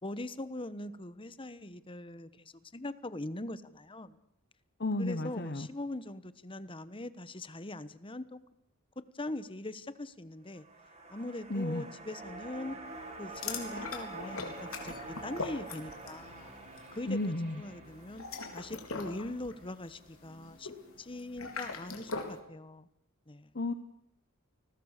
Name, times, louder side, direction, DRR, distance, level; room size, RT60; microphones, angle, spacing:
voice 1, 0.0-4.2 5.0-8.4 9.1-10.7 11.1-12.8 13.2-16.5 16.9-17.2 17.6-18.2 18.5-22.9 23.3-23.5, left 2 dB, 25° left, 14 dB, 1.2 m, -41 dB
voice 2, 4.8-5.7 11.5-11.9 17.1-17.6 23.5-23.7, left 2 dB, 50° left, 10 dB, 1.1 m, -33 dB
sound 1, 10.4-20.9 21.2-21.3, right 2 dB, 30° right, 5.1 m, -47 dB
sound 2, 13.3-16.3 16.5-16.9 18.0-22.4, left 4 dB, 80° left, 3.9 m, -41 dB
29.0 x 20.5 x 6.7 m, 0.80 s
head